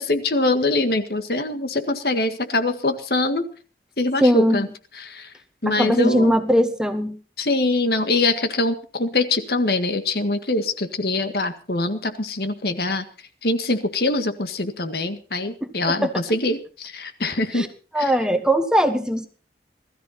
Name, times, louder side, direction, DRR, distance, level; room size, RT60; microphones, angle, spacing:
voice 1, 0.0-3.5 4.0-4.7 5.0-5.3 5.6-6.4 7.4-13.0 13.4-17.7 18.0-18.1, left 2 dB, 60° left, 8 dB, 1.8 m, -23 dB
voice 2, 4.2-4.7 5.7-7.1 15.6-15.7 16.0-16.1 17.5-17.7 17.9-19.3, equal, 5° right, 7 dB, 1.4 m, -20 dB
20.0 x 14.0 x 4.3 m, 0.38 s
head